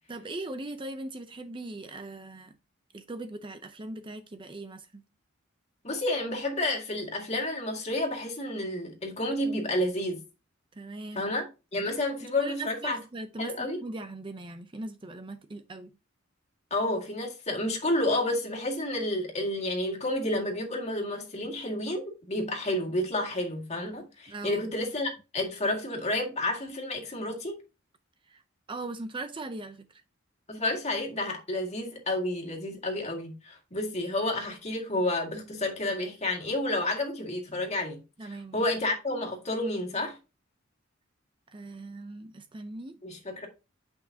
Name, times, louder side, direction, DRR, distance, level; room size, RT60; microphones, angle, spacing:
voice 1, 0.1-2.5 2.9-5.0 10.7-11.2 12.4-15.9 24.3-24.6 28.3-28.4 28.7-30.0 38.2-38.7 41.5-42.9, right 2 dB, 25° right, 0.6 m, -39 dB
voice 2, 5.8-10.2 11.2-13.0 13.4-13.8 16.7-27.6 30.5-40.2 43.0-43.5, left 1 dB, 35° left, 2.0 m, -30 dB
8.9 x 5.5 x 2.7 m
head